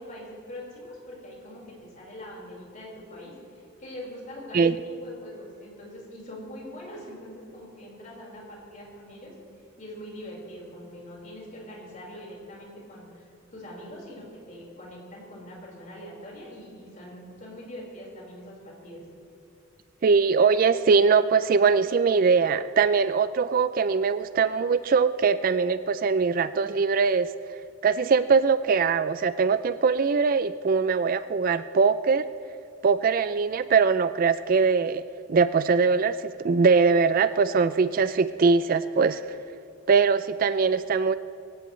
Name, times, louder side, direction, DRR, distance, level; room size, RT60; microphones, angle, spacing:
voice 1, 0.0-9.3 9.8-19.0, left 1 dB, 40° left, -4 dB, 4.6 m, -43 dB
voice 2, 20.0-27.3 27.8-32.3 32.8-35.0 35.3-39.3 39.9-41.1, right 5 dB, 40° right, 13 dB, 0.3 m, -22 dB
22.5 x 17.0 x 3.2 m, 2.5 s
head